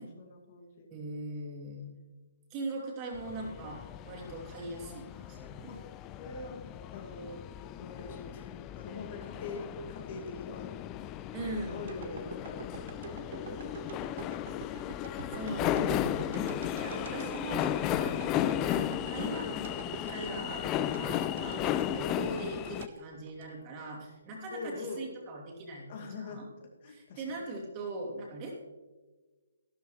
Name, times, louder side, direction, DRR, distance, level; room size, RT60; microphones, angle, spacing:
voice 1, 0.0-0.9 5.7-5.8 6.2-8.5 8.7-10.7 11.7-14.7 21.5-21.8 24.5-25.1 25.9-27.4, left 3 dB, 40° left, 1 dB, 2.2 m, -44 dB
voice 2, 0.9-1.9 2.5-5.7 11.3-11.8 15.3-16.5 16.8-21.6 21.9-26.5 26.9-28.5, right 2 dB, 25° right, -2 dB, 2.8 m, -40 dB
sound 1, 3.1-22.9, left 12 dB, 20° left, 0.3 m, -35 dB
sound 2, 11.9-24.1 24.5-24.6, right 5 dB, 45° right, 1.2 m, -45 dB
14.0 x 12.5 x 3.2 m, 1.3 s
figure-of-eight pair, 135°, 0 cm